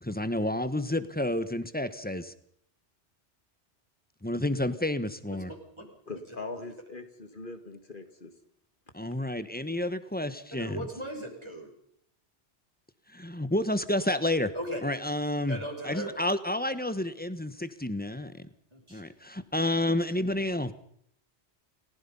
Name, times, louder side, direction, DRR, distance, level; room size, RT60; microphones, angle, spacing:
voice 1, 0.0-2.3 4.2-5.5 8.9-10.9 13.1-14.5 14.8-18.5 18.9-20.7, left 1 dB, 10° left, 12 dB, 1.2 m, -30 dB
voice 2, 6.1-8.3, left 3 dB, 50° left, 8 dB, 2.2 m, -41 dB
voice 3, 10.6-11.7 14.5-14.8 15.5-16.1 18.7-19.0, right 1 dB, 25° right, 0 dB, 6.1 m, -37 dB
29.5 x 16.0 x 5.6 m, 0.68 s
omnidirectional pair, 1.1 m